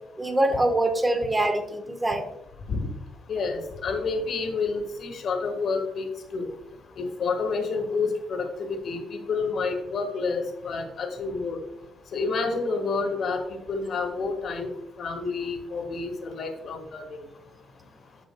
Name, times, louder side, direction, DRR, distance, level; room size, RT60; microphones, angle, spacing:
voice 1, 0.2-2.3, right 1 dB, 15° right, 6 dB, 1.1 m, -24 dB
voice 2, 3.3-6.1 6.3-6.5 7.0-11.6 12.1-13.4 13.7-14.7 15.0-17.2, left 4 dB, 60° left, 5 dB, 1.4 m, -29 dB
14.0 x 4.9 x 2.2 m, 0.91 s
cardioid pair, 90°, 0 cm